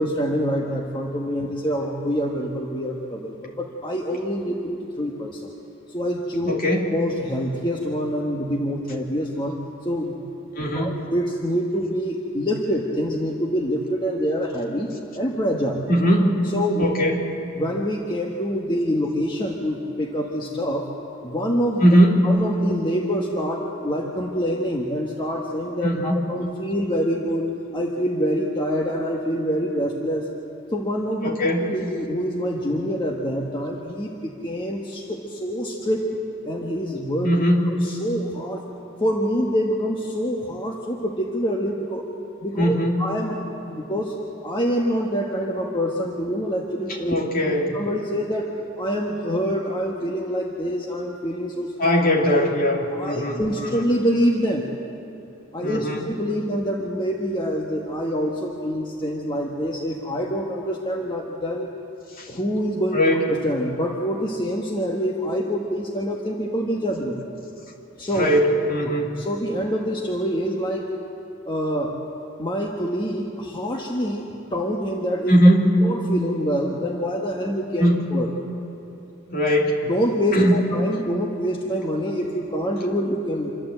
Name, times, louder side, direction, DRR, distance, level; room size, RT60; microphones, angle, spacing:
voice 1, 0.0-5.5 5.9-6.6 6.9-9.5 9.8-10.2 10.6-14.9 15.1-15.9 16.5-16.8 17.6-20.9 21.2-21.8 22.2-27.5 27.7-30.3 30.7-31.3 31.6-36.1 36.4-37.3 37.6-38.6 39.0-42.0 42.4-43.4 43.7-44.1 44.4-47.2 47.7-48.5 48.8-51.7 52.9-54.6 55.5-61.7 62.3-63.0 63.3-67.2 68.0-68.3 69.2-71.0 71.5-72.0 72.4-74.2 74.5-75.4 75.8-78.3 79.9-83.5, equal, 25° left, -1 dB, 1.3 m, -26 dB
voice 2, 6.5-6.8 10.6-10.9 15.9-16.4 16.8-17.2 21.8-22.3 25.8-26.3 31.2-31.6 37.2-37.7 42.6-42.9 47.1-47.7 51.8-53.8 55.6-56.0 62.2-62.3 62.9-63.2 68.2-69.1 75.3-75.7 77.8-78.1 79.3-79.8 80.3-80.7, equal, 45° left, -1 dB, 2.7 m, -19 dB
27.0 x 12.5 x 7.9 m, 2.9 s
head